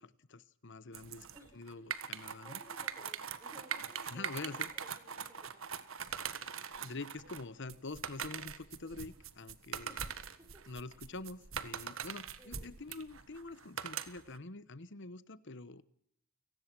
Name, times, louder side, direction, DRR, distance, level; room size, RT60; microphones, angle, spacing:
voice 1, 0.0-1.3 1.5-2.6 4.1-4.7 6.8-9.9 10.7-15.8, left 3 dB, 60° left, 16 dB, 1.2 m, -46 dB
sound 1, 0.9-14.4, right 7 dB, 70° right, 1.6 m, -42 dB
voice 2, 1.3-1.9 2.3-5.8 9.9-10.1 10.4-10.6 12.4-12.7, right 1 dB, 15° right, 5 dB, 5.1 m, -59 dB
29.5 x 18.5 x 6.2 m, 0.70 s
head